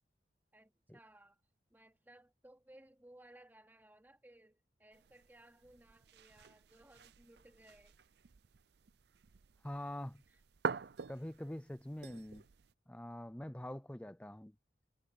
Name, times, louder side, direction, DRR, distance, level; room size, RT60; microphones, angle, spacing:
voice 1, 0.5-1.4 1.7-8.0 10.3-10.4, right 1 dB, 10° right, 2.8 m, -61 dB
sound 1, 4.9-12.7, right 5 dB, 60° right, 0.5 m, -47 dB
voice 2, 9.6-10.2 11.1-12.4 12.9-14.5, left 1 dB, 5° left, 0.5 m, -44 dB
head